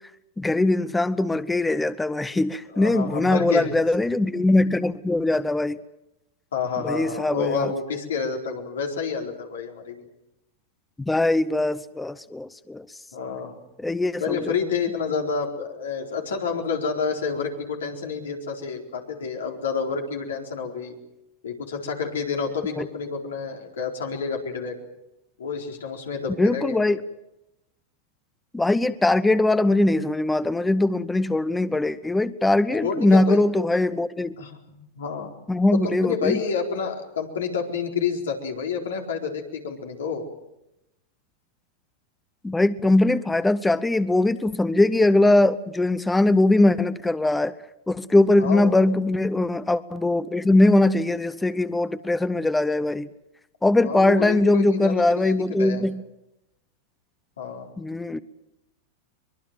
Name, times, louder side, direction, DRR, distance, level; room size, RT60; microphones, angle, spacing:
voice 1, 0.4-5.8 6.8-7.7 11.0-12.9 13.8-14.5 22.8-22.9 26.4-27.0 28.5-34.4 35.5-36.4 42.4-47.5 47.9-53.1 53.6-56.0 57.8-58.2, left 2 dB, 10° left, 15 dB, 0.8 m, -21 dB
voice 2, 2.7-3.7 6.5-10.1 13.1-13.6 14.2-20.9 21.4-24.8 25.4-26.8 32.8-33.4 34.4-35.3 35.8-40.2 48.4-48.8 53.8-55.8 57.4-57.7, left 5 dB, 85° left, 1 dB, 4.3 m, -29 dB
24.0 x 21.5 x 7.6 m, 0.90 s
hypercardioid pair, 115°, 0 cm